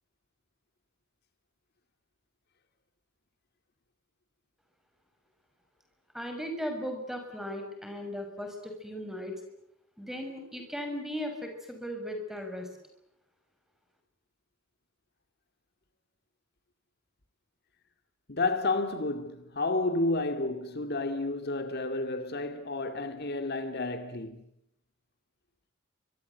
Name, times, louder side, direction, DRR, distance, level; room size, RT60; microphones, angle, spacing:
voice 1, 6.1-9.3 10.0-12.7, equal, ahead, 6.2 m, -37 dB
voice 2, 18.3-24.4, left 2 dB, 50° left, 2.2 m, -31 dB
28.0 x 25.0 x 8.3 m
head